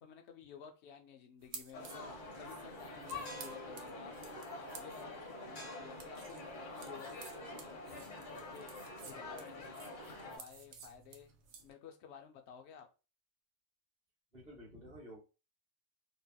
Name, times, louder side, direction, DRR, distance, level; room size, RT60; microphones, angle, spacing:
voice 1, 0.0-12.9, left 7 dB, 70° left, 0.8 m, -54 dB
sound 1, 1.4-11.7, right 6 dB, 90° right, 0.9 m, -55 dB
sound 2, 1.7-10.4, left 2 dB, 45° left, 1.2 m, -46 dB
voice 2, 14.3-15.2, equal, 35° right, 1.4 m, -52 dB
3.0 x 2.8 x 2.2 m
omnidirectional pair, 1.2 m